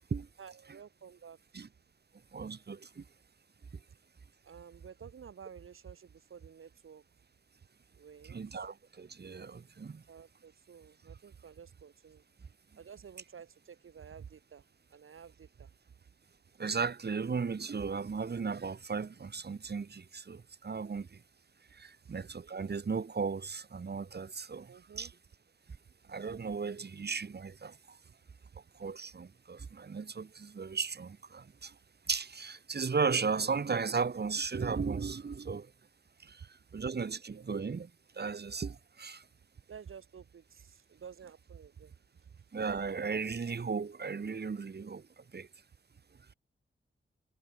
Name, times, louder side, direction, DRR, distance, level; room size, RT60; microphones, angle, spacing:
voice 1, 0.4-1.4 4.4-7.0 7.9-8.6 10.1-12.2 12.8-14.6 14.9-15.7 22.0-22.1 24.7-25.1 37.3-37.4 39.7-42.0 42.3-42.4, right 7 dB, 90° right, 1.3 m, -51 dB
voice 2, 2.3-3.0 8.2-10.0 16.6-21.2 21.7-25.1 26.1-28.0 28.7-31.8 32.1-35.7 36.2-39.2 42.5-45.5, right 5 dB, 55° right, 1.3 m, -36 dB
wide cardioid pair, 105°, 21 cm